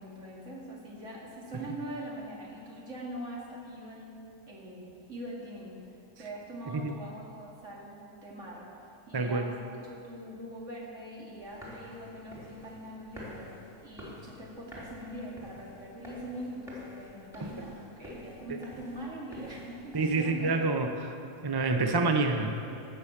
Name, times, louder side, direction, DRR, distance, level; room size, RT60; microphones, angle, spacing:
voice 1, 0.0-4.2 4.5-5.8 6.2-8.7 9.1-20.7 22.6-22.9, right 1 dB, 55° right, -4 dB, 2.7 m, -43 dB
voice 2, 9.1-9.4 17.4-17.5 19.9-21.2 21.4-22.5, right 3 dB, 35° right, 5 dB, 0.4 m, -27 dB
sound 1, 11.4-20.2, left 1 dB, ahead, 3.3 m, -49 dB
16.0 x 6.2 x 7.2 m, 2.8 s
omnidirectional pair, 1.5 m